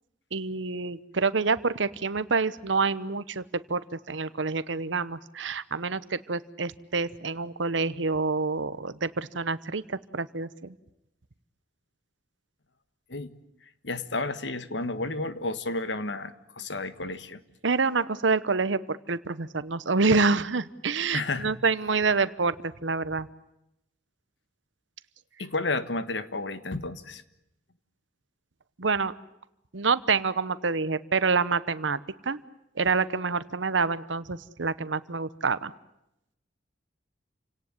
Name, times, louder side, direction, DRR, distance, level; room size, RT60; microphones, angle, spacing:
voice 1, 0.3-3.4 3.7-3.8 4.1-10.5 17.6-22.5 22.8-23.3 28.8-29.1 29.7-32.0 32.3-32.4 32.8-35.7, right 4 dB, 90° right, 15 dB, 1.0 m, -27 dB
voice 2, 13.8-17.4 21.1-21.5 25.4-27.2, left 2 dB, 75° left, 12 dB, 1.5 m, -31 dB
29.5 x 18.0 x 9.7 m, 0.85 s
head